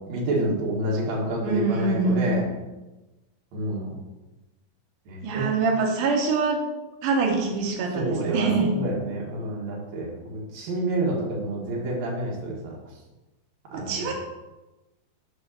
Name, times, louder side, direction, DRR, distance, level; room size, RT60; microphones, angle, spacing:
voice 1, 0.1-2.4 3.5-3.9 5.1-5.5 7.9-12.8 13.7-14.1, right 1 dB, 55° right, -3 dB, 2.3 m, -28 dB
voice 2, 1.4-2.4 5.2-6.6 7.0-8.8 13.7-14.1, right 4 dB, 90° right, 0 dB, 1.8 m, -24 dB
7.0 x 4.3 x 6.4 m, 1.1 s
omnidirectional pair, 5.1 m